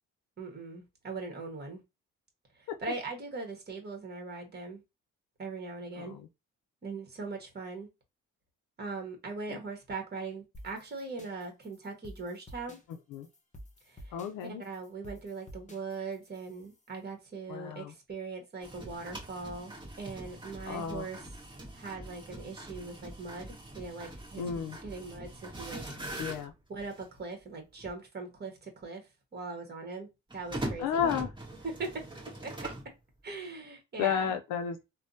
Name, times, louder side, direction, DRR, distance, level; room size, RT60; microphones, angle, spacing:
voice 1, 0.4-1.8 2.6-4.8 5.4-6.2 6.8-7.9 8.8-12.8 13.9-14.1 14.4-21.2 21.7-25.8 26.7-31.1 31.6-32.0 32.4-32.7 33.2-34.3, right 4 dB, 35° right, 1.2 m, -40 dB
voice 2, 6.0-6.3 9.5-9.6 12.9-13.3 14.1-14.6 17.5-17.9 20.7-21.1 24.4-24.8 26.2-26.5 30.8-31.3 34.0-34.9, left 8 dB, 85° left, 0.5 m, -32 dB
sound 1, 10.5-16.9, equal, 25° left, 0.9 m, -51 dB
sound 2, 18.6-27.1 27.8-27.9 30.3-32.9, right 1 dB, 15° right, 1.3 m, -42 dB
3.4 x 2.1 x 2.6 m
cardioid pair, 90°, 30 cm